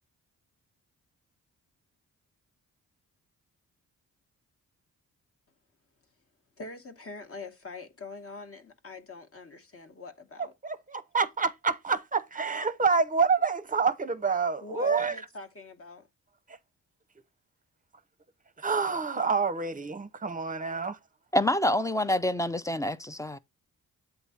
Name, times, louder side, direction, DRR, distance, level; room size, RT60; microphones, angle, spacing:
voice 1, 6.6-10.5 14.6-16.1, left 3 dB, 40° left, 1.2 m, -44 dB
voice 2, 10.6-15.1 18.6-21.0, right 5 dB, 25° right, 0.7 m, -27 dB
voice 3, 21.3-23.4, left 1 dB, 10° left, 0.5 m, -27 dB
7.8 x 2.7 x 5.6 m
supercardioid pair, 55°, 36 cm